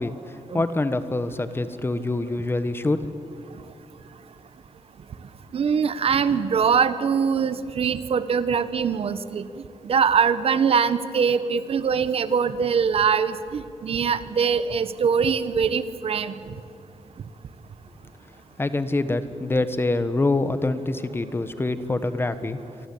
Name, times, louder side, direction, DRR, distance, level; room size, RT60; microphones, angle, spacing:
voice 1, 0.0-3.1 18.6-22.9, left 2 dB, 20° left, 12 dB, 1.4 m, -25 dB
voice 2, 5.5-9.5 9.8-16.3, right 6 dB, 60° right, 13 dB, 1.2 m, -22 dB
26.5 x 24.0 x 8.6 m, 2.5 s
wide cardioid pair, 140°, 11 cm